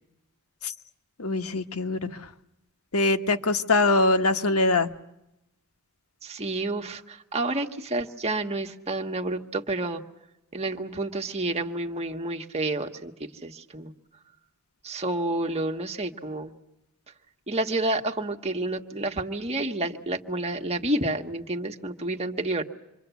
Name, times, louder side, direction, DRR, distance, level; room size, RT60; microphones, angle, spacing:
voice 1, 1.2-2.2 2.9-4.9, left 2 dB, 90° left, 7 dB, 1.3 m, -23 dB
voice 2, 6.2-10.0 10.5-13.1 13.4-13.9 14.8-16.5 17.5-22.6, right 2 dB, 30° right, 3 dB, 1.5 m, -29 dB
27.0 x 23.5 x 8.2 m, 0.87 s
head